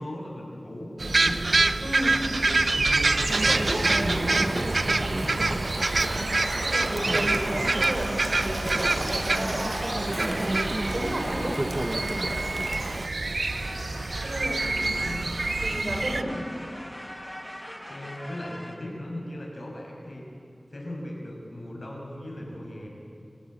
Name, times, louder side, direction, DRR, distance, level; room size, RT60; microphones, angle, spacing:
voice 1, 0.0-1.5 2.1-3.6 4.0-5.6 14.6-15.3 17.9-20.2 20.7-22.9, left 1 dB, 65° left, -1 dB, 6.6 m, -38 dB
sound 1, 1.0-16.2, right 3 dB, 75° right, 0.8 m, -26 dB
voice 2, 1.8-2.2 3.4-4.2 5.9-6.2 6.6-11.6 14.2-15.3 15.6-16.3 22.4-22.5, right 1 dB, 50° right, 1 dB, 6.0 m, -34 dB
Chatter / Stream, 3.3-13.1, right 1 dB, 35° right, 1.2 m, -32 dB
sound 2, 6.3-12.9 13.4-18.8, equal, 15° left, 2.6 m, -40 dB
28.0 x 16.0 x 8.8 m, 2.6 s
wide cardioid pair, 60°, 0 cm